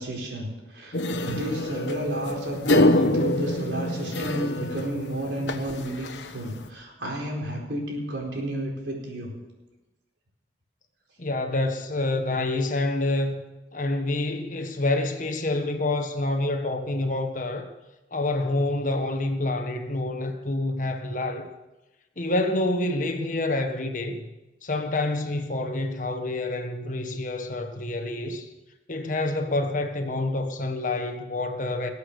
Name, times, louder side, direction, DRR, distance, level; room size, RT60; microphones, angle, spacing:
voice 1, 0.0-9.3, right 1 dB, 85° right, 4.4 m, -32 dB
sound 1, 0.9-6.7, left 1 dB, 90° left, 1.2 m, -26 dB
voice 2, 11.2-13.4 13.7-17.6 18.1-21.5 22.2-24.2 24.6-28.5 28.9-31.9, left 2 dB, 45° left, 1.5 m, -27 dB
19.5 x 8.4 x 6.8 m
head